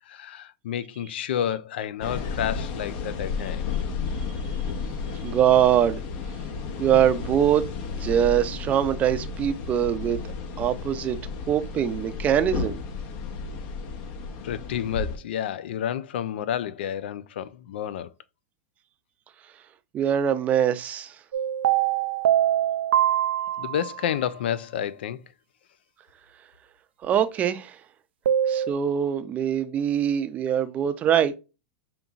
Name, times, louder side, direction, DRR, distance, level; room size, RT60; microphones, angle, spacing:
voice 1, 0.1-3.6 14.4-18.1 23.6-25.2, left 9 dB, 75° left, 0.4 m, -30 dB
sound 1, 2.0-15.2, left 5 dB, 50° left, 0.8 m, -33 dB
voice 2, 5.2-6.0 6.8-7.7 8.0-10.2 10.6-11.2 11.5-12.8 19.9-21.1 27.0-27.8 28.5-31.3, right 9 dB, 25° right, 0.5 m, -23 dB
sound 2, 21.3-24.1 28.3-28.7, right 11 dB, 90° right, 0.4 m, -23 dB
5.2 x 2.9 x 2.4 m
supercardioid pair, 135°, 6 cm